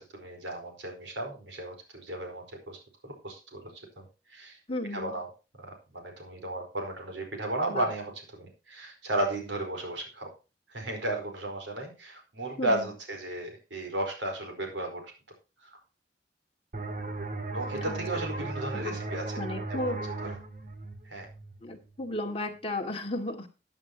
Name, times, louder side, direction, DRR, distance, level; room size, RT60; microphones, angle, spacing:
voice 1, 0.0-4.6 4.9-5.3 5.6-10.3 10.7-15.1 15.6-15.8 17.5-19.4 19.7-20.0 21.0-21.3, right 1 dB, 75° right, 3 dB, 4.6 m, -34 dB
voice 2, 4.7-5.2 7.7-7.9 12.6-12.9 17.8-17.9 18.4-18.5 18.7-18.9 19.4-20.0 21.6-23.5, left 1 dB, 35° left, 2 dB, 2.3 m, -34 dB
sound 1, 16.7-22.1, right 2 dB, 50° right, 2.1 m, -37 dB
15.0 x 9.2 x 3.0 m, 0.31 s
head